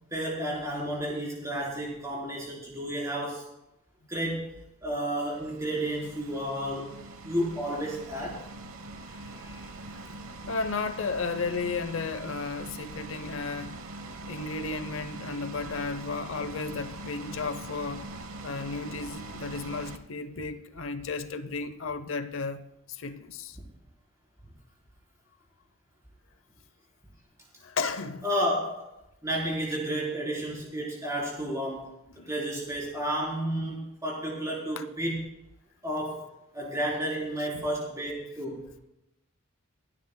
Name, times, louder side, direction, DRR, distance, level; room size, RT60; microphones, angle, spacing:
voice 1, 0.1-3.5 4.1-4.5 4.8-6.9 7.2-8.4 28.2-28.9 29.2-31.9 32.3-35.2 35.8-38.7, right 1 dB, 15° right, 3.7 m, -31 dB
sound 1, 5.2-20.0, right 2 dB, 80° right, 1.0 m, -42 dB
voice 2, 9.1-10.0 10.5-13.7 14.3-18.1 18.4-23.6 27.6-28.3 32.2-32.3 34.8-34.9 37.5-37.7, left 4 dB, 70° left, 0.7 m, -34 dB
27.5 x 9.7 x 2.2 m
head